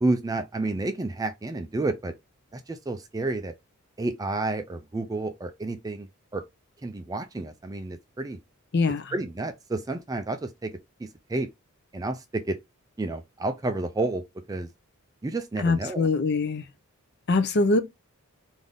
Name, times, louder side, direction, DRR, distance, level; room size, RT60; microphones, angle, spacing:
voice 1, 0.0-2.1 2.5-3.5 4.0-6.1 6.3-6.4 6.8-8.4 9.1-10.7 11.0-11.5 11.9-12.6 13.0-14.7 15.2-16.1, right 2 dB, 15° right, 0.3 m, -30 dB
voice 2, 8.7-9.1 15.6-16.6 17.3-17.8, left 3 dB, 50° left, 0.5 m, -23 dB
3.7 x 2.6 x 3.4 m
head